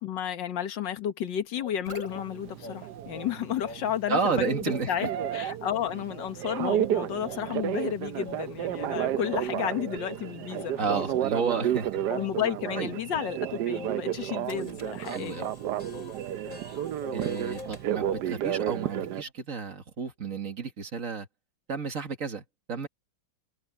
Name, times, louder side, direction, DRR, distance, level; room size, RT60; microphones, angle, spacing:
voice 1, 0.0-4.5 4.9-11.4 12.1-15.5, left 10 dB, 65° left, 2.0 m, -32 dB
sound 1, 1.6-18.5 18.9-19.3, left 2 dB, 40° left, 7.1 m, -46 dB
Telephone, 2.1-19.2, right 11 dB, 65° right, 1.1 m, -32 dB
voice 2, 4.1-5.1 10.8-11.9 12.8-12.9 15.1-15.5 17.1-21.3 21.7-22.9, right 5 dB, 40° right, 2.0 m, -31 dB
omnidirectional pair, 2.2 m